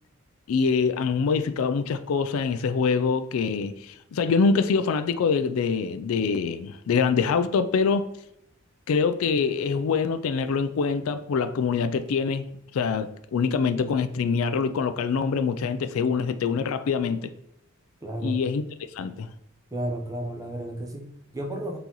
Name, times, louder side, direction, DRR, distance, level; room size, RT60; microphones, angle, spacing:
voice 1, 0.5-8.1 8.9-12.4 12.7-17.3 18.2-18.6 18.9-19.3, left 5 dB, 75° left, 0.4 m, -24 dB
voice 2, 18.0-18.4 19.7-21.8, right 1 dB, 15° right, 0.7 m, -32 dB
3.9 x 3.8 x 2.9 m
head